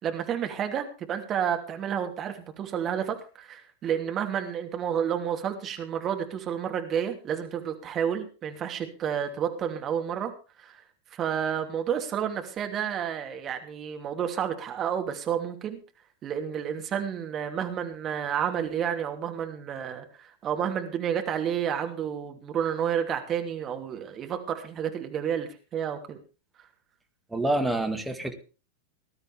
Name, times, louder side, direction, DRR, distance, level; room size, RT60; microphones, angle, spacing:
voice 1, 0.0-10.3 10.6-10.8 11.1-15.8 16.2-26.2, right 8 dB, 30° right, 5 dB, 2.7 m, -30 dB
voice 2, 27.3-28.3, right 1 dB, 5° right, 4 dB, 2.1 m, -27 dB
19.5 x 13.0 x 3.4 m, 0.34 s
figure-of-eight pair, 90°, 0 cm